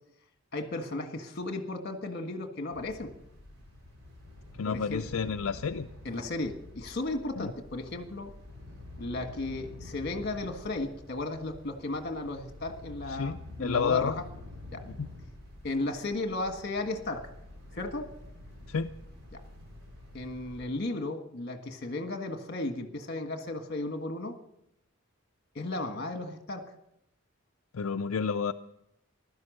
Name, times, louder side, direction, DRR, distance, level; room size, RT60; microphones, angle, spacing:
voice 1, 0.5-3.1 4.6-5.0 6.0-8.3 9.0-14.2 14.7-14.8 15.6-17.3 17.7-18.1 19.3-19.4 20.1-24.4 25.5-26.7, left 2 dB, 45° left, 6 dB, 1.5 m, -35 dB
sound 1, 2.7-20.7, left 2 dB, 80° right, 5.1 m, -48 dB
voice 2, 4.5-5.9 7.4-7.5 13.1-14.2 14.8-15.1 18.7-18.9 27.7-28.5, left 6 dB, 70° left, 6 dB, 0.5 m, -30 dB
15.5 x 12.0 x 6.5 m, 0.81 s
head